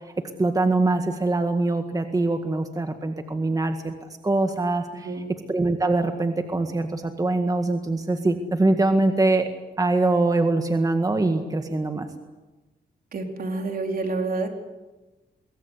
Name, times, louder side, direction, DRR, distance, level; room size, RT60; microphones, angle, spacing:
voice 1, 0.4-3.9 4.2-5.1 5.5-9.5 9.8-12.1, right 2 dB, 20° right, 6 dB, 1.9 m, -23 dB
voice 2, 13.1-14.5, right 3 dB, 65° right, 4 dB, 4.3 m, -28 dB
25.5 x 22.5 x 8.3 m, 1.1 s
cardioid pair, 105°, 16 cm